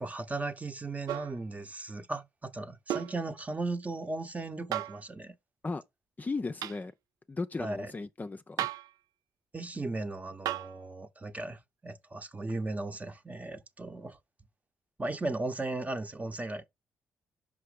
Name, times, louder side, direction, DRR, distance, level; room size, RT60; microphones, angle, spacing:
voice 1, 0.0-5.3 7.6-7.9 9.5-14.2 15.0-16.7, right 2 dB, 25° right, 1.0 m, -36 dB
sound 1, 1.1-1.4 2.9-3.2 4.7-5.0 6.6-6.8 8.6-8.9 10.4-10.8 12.5-12.6, right 12 dB, 75° right, 0.4 m, -34 dB
voice 2, 6.2-6.9 7.3-8.7, left 3 dB, 30° left, 0.6 m, -36 dB
5.6 x 5.2 x 5.0 m
supercardioid pair, 65°, 6 cm